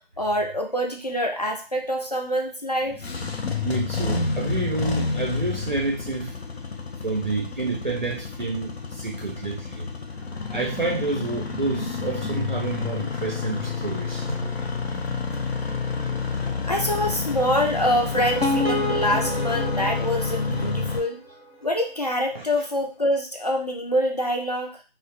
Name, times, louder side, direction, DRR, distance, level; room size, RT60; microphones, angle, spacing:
voice 1, 0.2-3.1 16.7-21.2 21.6-24.8, equal, 40° left, 2 dB, 0.4 m, -25 dB
Engine starting, 2.9-21.0, left 5 dB, 90° left, 0.6 m, -29 dB
voice 2, 3.6-6.4 7.0-9.9 10.5-14.5 20.5-20.9 22.3-22.4, right 3 dB, 50° right, 0 dB, 0.5 m, -29 dB
sound 1, 18.0-21.1, equal, 65° left, 0.8 m, -28 dB
2.3 x 2.0 x 2.8 m, 0.30 s
figure-of-eight pair, 175°, 31 cm